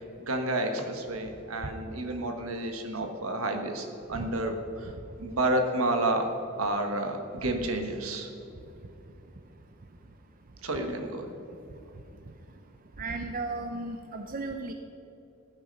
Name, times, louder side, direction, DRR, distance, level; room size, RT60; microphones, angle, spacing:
voice 1, 0.2-4.5 4.8-4.9 5.2-6.3 6.6-8.3 10.6-11.3, right 1 dB, 75° right, 5 dB, 1.5 m, -30 dB
voice 2, 13.0-14.7, right 3 dB, 40° right, 6 dB, 0.6 m, -35 dB
15.0 x 9.0 x 5.4 m, 2.8 s
head